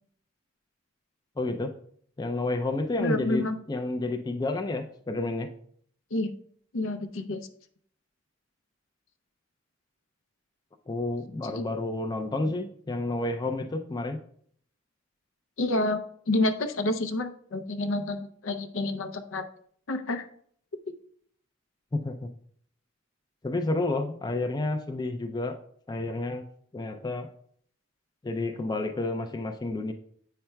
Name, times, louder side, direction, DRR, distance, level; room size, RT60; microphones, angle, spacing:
voice 1, 1.4-1.7 2.2-5.5 10.9-14.2 21.9-22.2 23.4-25.6 25.9-26.5 26.7-27.3 28.2-29.9, left 2 dB, 20° left, 6 dB, 0.3 m, -30 dB
voice 2, 3.0-3.6 6.1-6.3 6.7-7.5 11.4-11.5 15.6-16.0 16.3-19.4 19.9-20.2, left 2 dB, 75° left, 8 dB, 0.6 m, -28 dB
8.5 x 5.7 x 2.2 m, 0.62 s
head